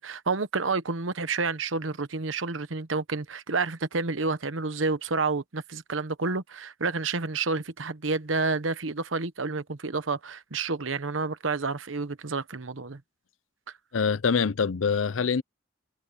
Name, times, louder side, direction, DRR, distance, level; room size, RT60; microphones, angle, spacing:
voice 1, 0.0-13.0, right 4 dB, 85° right, 1.1 m, -29 dB
voice 2, 13.9-15.4, left 5 dB, 85° left, 0.6 m, -25 dB
head